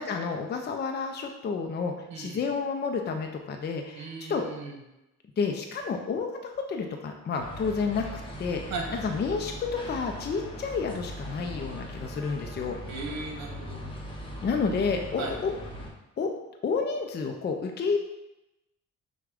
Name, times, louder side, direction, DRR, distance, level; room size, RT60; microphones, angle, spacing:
voice 1, 0.0-4.4 5.4-8.1 8.4-8.7 9.0-12.8 14.4-15.5 16.2-16.3 16.6-18.0, left 5 dB, 35° left, 3 dB, 0.5 m, -30 dB
voice 2, 2.1-2.4 3.9-4.8 8.7-9.0 12.9-13.8 15.2-15.3, right 3 dB, 65° right, 0 dB, 1.1 m, -37 dB
sound 1, 7.4-15.9, equal, 15° left, 0.8 m, -40 dB
5.8 x 2.3 x 3.5 m, 0.92 s
cardioid pair, 90°, 30 cm